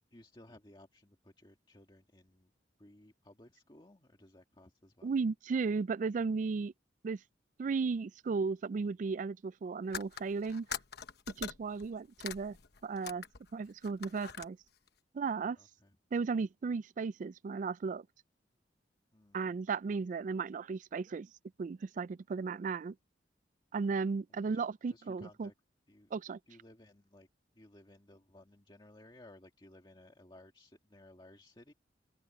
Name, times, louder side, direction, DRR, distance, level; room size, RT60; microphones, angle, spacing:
voice 1, 0.1-2.5 2.8-5.1 11.6-11.9 15.6-16.0 19.1-19.4 24.3-25.5 25.9-26.1 26.5-27.3 27.5-31.7, left 1 dB, 25° left, 1.8 m, -58 dB
voice 2, 5.0-6.7 7.0-7.2 7.6-10.7 11.4-12.6 12.8-13.2 13.5-14.6 15.1-15.6 16.1-18.0 19.3-21.3 21.6-22.9 23.7-25.5 26.1-26.4, right 4 dB, 45° right, 0.3 m, -35 dB
sound 1, 9.9-13.5 13.8-14.5, left 7 dB, 65° left, 1.1 m, -43 dB
open air
head